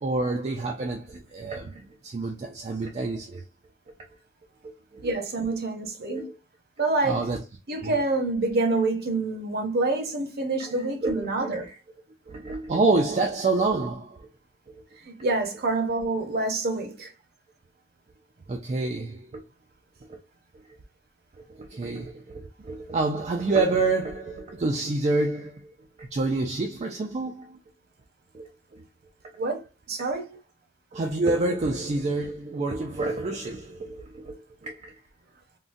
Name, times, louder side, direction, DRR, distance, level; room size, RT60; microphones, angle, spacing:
voice 1, 0.0-3.4 4.6-5.1 6.1-6.4 7.0-7.4 7.8-7.9 11.0-11.5 12.3-14.3 14.7-14.8 18.5-19.4 20.1-20.2 21.5-27.6 28.3-28.8 30.9-34.9, right 3 dB, 30° right, 0.3 m, -28 dB
voice 2, 5.0-6.2 6.8-7.2 7.7-11.7 15.0-17.1 29.4-29.6 29.9-30.4, right 2 dB, 50° right, 0.8 m, -27 dB
3.7 x 2.1 x 2.5 m
head